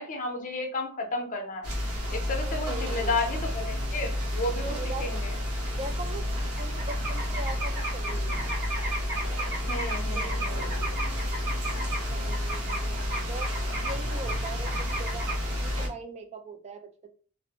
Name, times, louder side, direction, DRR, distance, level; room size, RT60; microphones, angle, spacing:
voice 1, 0.0-1.7 2.1-5.4 9.6-10.7, left 2 dB, 35° left, 2 dB, 0.5 m, -32 dB
sound 1, 1.6-15.9, left 1 dB, 80° right, 0.7 m, -31 dB
voice 2, 2.4-3.2 4.6-5.1 5.8-8.5 9.9-10.7 12.1-13.0 13.3-15.3 15.6-17.1, right 3 dB, 30° right, 6 dB, 0.3 m, -41 dB
sound 2, 6.4-12.0 12.3-15.4, right 1 dB, 60° right, 1.4 m, -34 dB
2.5 x 2.0 x 2.7 m, 0.40 s
head